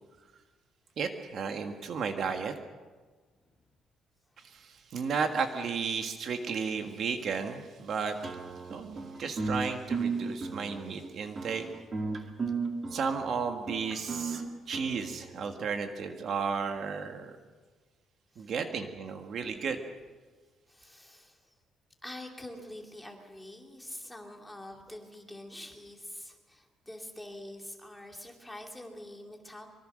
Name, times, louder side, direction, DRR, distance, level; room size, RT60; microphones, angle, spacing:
voice 1, 1.0-2.5 4.5-8.2 8.7-11.6 12.9-17.3 18.4-19.8, right 5 dB, 45° right, 5 dB, 1.6 m, -33 dB
sound 1, 8.2-15.6, right 4 dB, 25° right, 2.2 m, -35 dB
voice 2, 20.7-21.6 22.0-29.7, left 1 dB, 5° left, 1 dB, 2.7 m, -46 dB
25.5 x 23.5 x 6.5 m, 1.4 s
cardioid pair, 175°, 0 cm